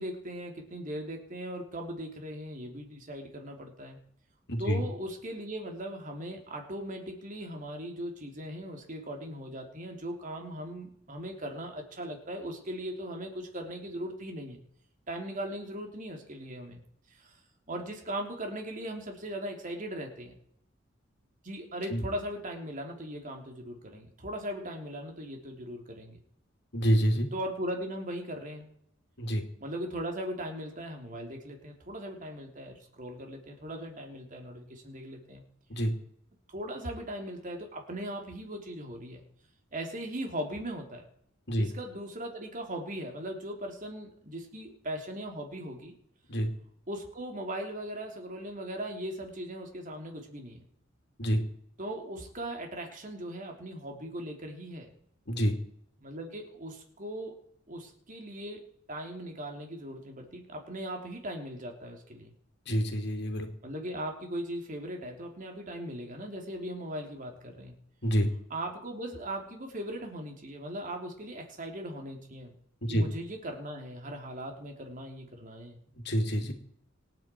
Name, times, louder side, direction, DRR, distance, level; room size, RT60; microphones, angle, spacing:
voice 1, 0.0-4.0 4.6-14.6 15.1-16.8 17.1-17.3 17.7-20.3 21.4-26.2 27.3-28.7 29.6-35.4 36.5-39.2 39.7-41.0 41.6-45.9 46.9-50.6 51.8-54.9 56.0-57.3 57.7-58.6 58.9-62.3 63.6-67.7 68.5-72.5 72.9-75.8, right 1 dB, 45° right, 2 dB, 3.3 m, -39 dB
voice 2, 4.5-4.8 21.9-22.0 26.7-27.3 29.2-29.4 35.7-35.9 41.5-41.7 46.3-46.5 51.2-51.4 55.3-55.6 62.7-63.5 68.0-68.3 72.8-73.1 76.0-76.5, equal, 60° left, 5 dB, 2.6 m, -27 dB
26.5 x 9.3 x 4.6 m, 0.70 s
head